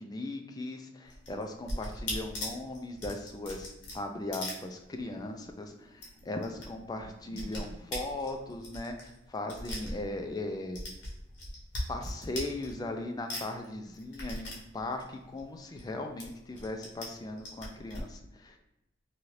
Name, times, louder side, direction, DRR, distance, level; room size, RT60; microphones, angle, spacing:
voice 1, 0.0-10.8 11.9-18.6, left 2 dB, 20° left, 4 dB, 0.3 m, -38 dB
sound 1, 1.1-5.3 5.5-5.6 5.9-6.7 6.9-10.4 10.7-13.0 13.3-15.9 16.2-17.1 17.4-18.0, left 1 dB, 85° left, 1.0 m, -39 dB
sound 2, 5.7-8.4 11.2-11.3, right 1 dB, 40° right, 0.6 m, -52 dB
2.8 x 2.4 x 3.1 m, 0.91 s
head